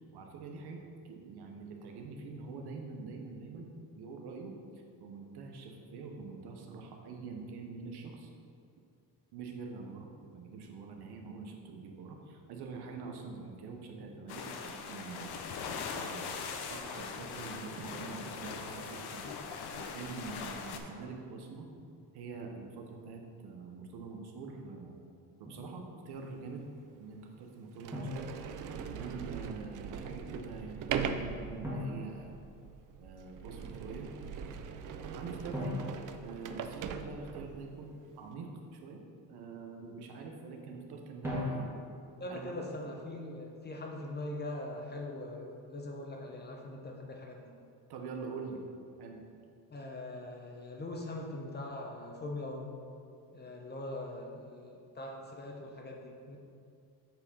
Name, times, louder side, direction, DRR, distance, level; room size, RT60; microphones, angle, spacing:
voice 1, 0.1-8.3 9.3-15.4 15.9-16.3 16.7-19.4 19.7-21.7 22.1-24.9 25.4-26.7 27.0-28.3 28.7-32.4 33.0-34.1 35.1-35.8 36.2-39.0 39.3-41.7 42.3-42.9 47.9-48.6 49.0-49.2, right 4 dB, 75° right, 2 dB, 1.2 m, -45 dB
sound 1, 14.3-20.8, left 5 dB, 75° left, 0.8 m, -41 dB
Drum, 25.5-25.7 27.9-29.1 31.6-33.0 35.5-37.2 41.2-42.2, left 1 dB, 5° right, 1.9 m, -40 dB
Sliding door, 26.4-26.5 27.2-27.3 27.8-37.7, right 6 dB, 50° right, 0.5 m, -40 dB
voice 2, 42.2-47.5 49.7-52.8 53.3-56.4, left 1 dB, 25° left, 0 dB, 1.0 m, -42 dB
7.8 x 4.6 x 5.6 m, 2.4 s
cardioid pair, 135°, 39 cm